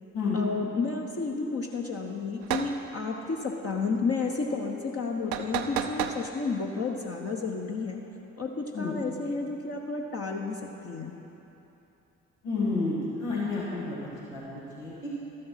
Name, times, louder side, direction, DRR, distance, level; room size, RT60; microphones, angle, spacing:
voice 1, 0.3-8.0 8.4-11.1, left 4 dB, 40° left, 0 dB, 1.0 m, -31 dB
sound 1, 2.4-2.7 5.3-6.2, right 10 dB, 75° right, 0.6 m, -30 dB
voice 2, 12.4-14.0 14.3-14.4 14.8-15.1, left 3 dB, 85° left, -8 dB, 1.7 m, -30 dB
13.0 x 6.6 x 5.8 m, 3.0 s
hypercardioid pair, 40°, 38 cm